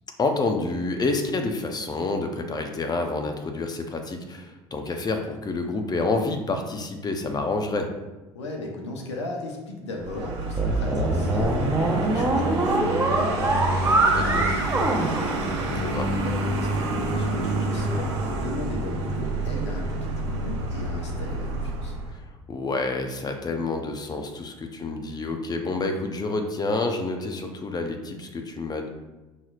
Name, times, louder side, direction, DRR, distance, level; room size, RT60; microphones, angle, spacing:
voice 1, 0.2-7.9 14.1-14.5 15.7-16.1 22.5-28.9, left 3 dB, 30° left, 5 dB, 0.7 m, -28 dB
voice 2, 8.3-21.9, left 2 dB, 85° left, 1 dB, 0.8 m, -37 dB
Vehicle, 10.0-22.2, right 2 dB, 80° right, 0.8 m, -28 dB
sound 1, 10.6-16.0, right 2 dB, 15° right, 0.9 m, -24 dB
5.6 x 3.1 x 2.4 m, 1.1 s
hypercardioid pair, 65°, 14 cm